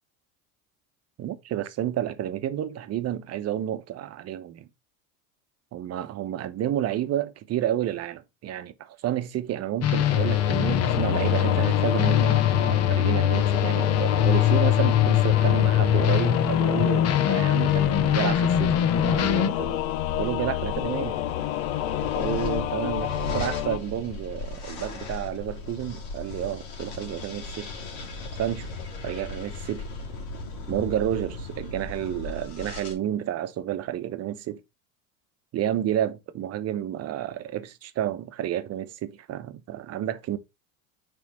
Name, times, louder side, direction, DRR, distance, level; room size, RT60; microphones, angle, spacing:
voice 1, 1.2-4.7 5.7-19.8 20.2-21.2 22.2-27.7 28.4-28.7 29.0-29.9 30.7-34.6 35.5-40.4, right 11 dB, 40° right, 0.9 m, -30 dB
sound 1, 9.8-19.5, left 10 dB, 40° left, 0.9 m, -22 dB
Singing / Musical instrument, 9.9-23.8, left 13 dB, 80° left, 0.7 m, -29 dB
sound 2, 17.7-32.9, left 3 dB, 60° left, 2.5 m, -37 dB
5.9 x 3.6 x 5.7 m
supercardioid pair, 110°, 41 cm